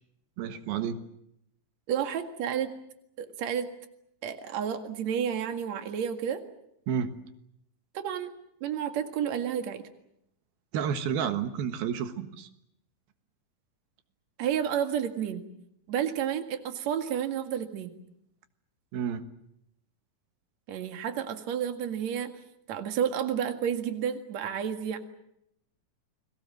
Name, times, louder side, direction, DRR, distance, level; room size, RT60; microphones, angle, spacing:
voice 1, 0.4-1.0 6.9-7.1 10.7-12.5 18.9-19.2, right 8 dB, 90° right, 9 dB, 3.4 m, -30 dB
voice 2, 1.9-2.7 3.2-3.7 4.2-6.4 7.9-8.3 8.6-9.8 14.4-15.4 15.9-17.9 20.7-22.4 22.7-25.0, right 8 dB, 55° right, 7 dB, 2.9 m, -31 dB
30.0 x 21.5 x 7.7 m, 0.78 s
omnidirectional pair, 4.2 m